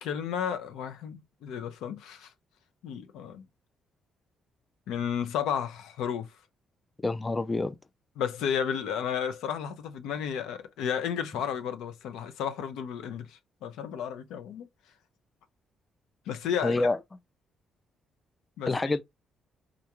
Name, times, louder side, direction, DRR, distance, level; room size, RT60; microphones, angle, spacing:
voice 1, 0.0-2.3 2.8-3.5 4.9-6.3 8.2-14.7 16.3-16.8 18.6-19.0, left 8 dB, 90° left, 0.5 m, -33 dB
voice 2, 7.0-7.7 16.6-17.0 18.7-19.0, left 2 dB, 25° left, 0.3 m, -27 dB
3.7 x 2.3 x 2.9 m
cardioid pair, 90°, 0 cm